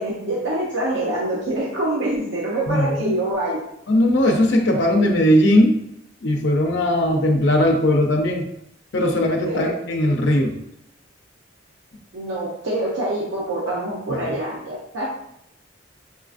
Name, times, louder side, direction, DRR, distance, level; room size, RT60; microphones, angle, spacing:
voice 1, 0.0-3.6 9.4-9.7 12.1-15.1, right 1 dB, 85° right, -5 dB, 0.7 m, -25 dB
voice 2, 2.7-3.1 3.9-5.8 6.2-8.4 8.9-10.6 14.1-14.2, left 1 dB, 65° left, 2 dB, 0.5 m, -18 dB
5.4 x 2.4 x 2.4 m, 0.75 s
head